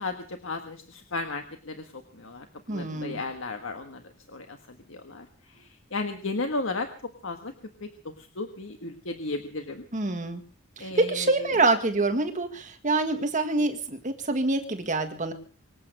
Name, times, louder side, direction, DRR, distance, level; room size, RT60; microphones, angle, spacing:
voice 1, 0.0-4.0 4.3-4.6 4.9-6.9 7.2-7.5 7.8-9.8 10.8-11.6, left 3 dB, 85° left, 6 dB, 1.6 m, -34 dB
voice 2, 2.7-3.2 9.9-10.4 10.8-15.3, right 2 dB, 40° right, 7 dB, 1.7 m, -26 dB
24.5 x 8.6 x 6.6 m, 0.42 s
head